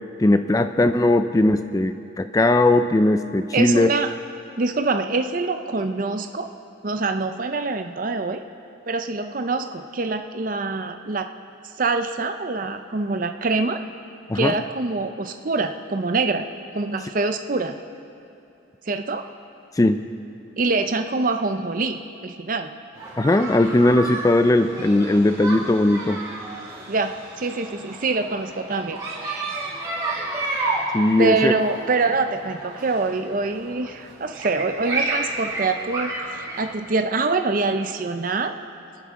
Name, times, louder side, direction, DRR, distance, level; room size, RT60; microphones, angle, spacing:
voice 1, 0.2-3.9 14.3-14.6 19.8-20.1 23.2-26.2 30.9-31.5, left 2 dB, 20° left, 9 dB, 0.3 m, -19 dB
voice 2, 3.5-4.1 4.6-6.5 6.8-8.4 8.9-11.3 11.8-13.8 14.3-16.5 16.7-17.8 18.9-19.2 20.6-22.7 26.9-29.5 31.2-38.5, right 3 dB, 45° right, 7 dB, 0.6 m, -25 dB
sound 1, 22.9-36.7, right 2 dB, 15° right, 3.1 m, -31 dB
28.5 x 11.0 x 3.7 m, 2.7 s
head